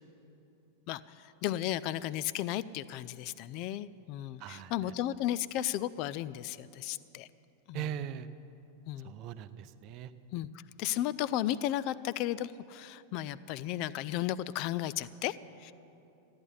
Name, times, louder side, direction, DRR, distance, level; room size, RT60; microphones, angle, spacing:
voice 1, 0.9-7.3 7.7-8.0 8.9-9.1 10.3-10.5 10.8-15.7, left 13 dB, 45° left, 17 dB, 0.4 m, -34 dB
voice 2, 4.4-4.7 7.7-8.3 9.0-10.1, right 10 dB, 40° right, 12 dB, 0.6 m, -39 dB
13.5 x 9.6 x 10.0 m, 2.8 s
figure-of-eight pair, 90°, 0 cm